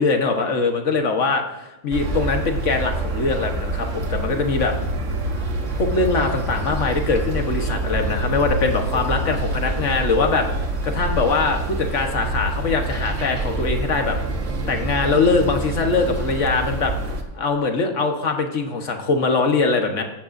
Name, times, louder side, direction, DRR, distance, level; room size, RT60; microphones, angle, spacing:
voice 1, 0.0-4.7 5.4-5.5 5.8-10.5 10.8-14.2 14.7-16.9 17.3-20.0, left 4 dB, 80° left, 4 dB, 1.6 m, -22 dB
sound 1, 1.9-17.2, right 2 dB, 90° right, 1.7 m, -26 dB
17.0 x 13.5 x 2.7 m, 0.98 s
omnidirectional pair, 1.2 m